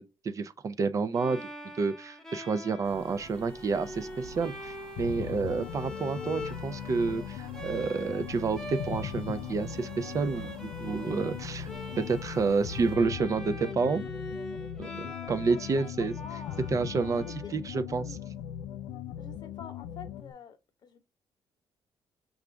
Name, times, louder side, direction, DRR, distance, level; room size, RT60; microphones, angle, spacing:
voice 1, 0.0-1.5 1.8-11.7 12.0-14.0 14.8-16.1 16.7-17.2 17.5-18.2, right 4 dB, 35° right, 0.4 m, -29 dB
Bowed string instrument, 1.1-18.1, left 1 dB, 5° left, 0.7 m, -44 dB
sound 1, 2.8-13.0, right 3 dB, 90° right, 0.8 m, -50 dB
sound 2, 5.0-20.3, left 10 dB, 90° left, 0.4 m, -39 dB
voice 2, 15.0-15.6 16.0-16.7 17.1-17.6 18.0-18.3 19.2-21.0, left 6 dB, 50° left, 0.9 m, -47 dB
4.9 x 2.4 x 3.2 m
cardioid pair, 110°, 9 cm